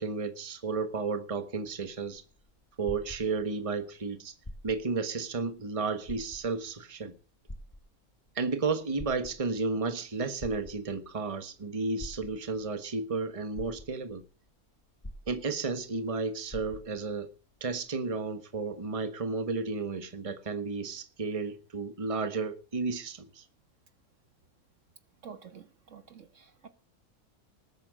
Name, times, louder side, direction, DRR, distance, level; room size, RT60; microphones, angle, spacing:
voice 1, 0.0-2.2 2.8-4.3 4.6-7.1 8.3-14.2 15.3-17.3 17.6-23.4, right 4 dB, 25° right, 1.4 m, -33 dB
sound 1, 2.2-3.7 4.3-5.0 5.4-5.5 6.0-6.7 7.5-8.3 8.8-9.7 10.4-11.1 12.0-12.7 13.2-13.3 13.5-14.3 15.0-15.8 16.1-16.2 16.5-17.1 17.8-17.9, left 1 dB, 15° left, 1.8 m, -45 dB
voice 2, 25.2-26.7, right 6 dB, 55° right, 1.6 m, -49 dB
19.5 x 8.6 x 6.4 m
omnidirectional pair, 1.6 m